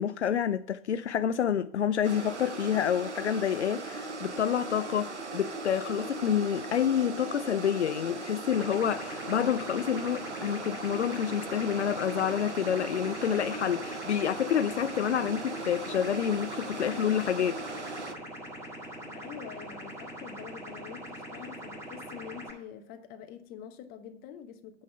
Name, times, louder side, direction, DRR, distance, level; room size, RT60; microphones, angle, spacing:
voice 1, 0.0-17.6, left 9 dB, 75° left, 0.5 m, -28 dB
sound 1, 2.0-18.1, right 3 dB, 80° right, 1.1 m, -39 dB
sound 2, 8.5-22.5, equal, 10° right, 1.6 m, -43 dB
voice 2, 19.0-24.8, left 8 dB, 25° left, 1.0 m, -46 dB
8.5 x 5.7 x 5.6 m
figure-of-eight pair, 105°, 34 cm